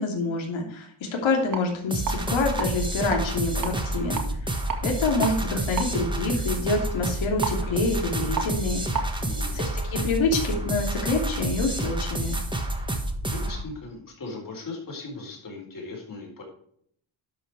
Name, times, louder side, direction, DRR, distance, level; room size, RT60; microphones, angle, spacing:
voice 1, 0.0-8.8 9.5-12.4, left 3 dB, 75° left, 1 dB, 2.9 m, -27 dB
sound 1, 1.4-9.1, right 5 dB, 45° right, 2.1 m, -36 dB
sound 2, 1.9-13.6, right 1 dB, 10° right, 1.5 m, -29 dB
voice 2, 9.2-9.6 12.8-16.4, left 3 dB, 45° left, 0 dB, 4.4 m, -39 dB
11.5 x 5.6 x 4.8 m, 0.65 s
cardioid pair, 105°, 47 cm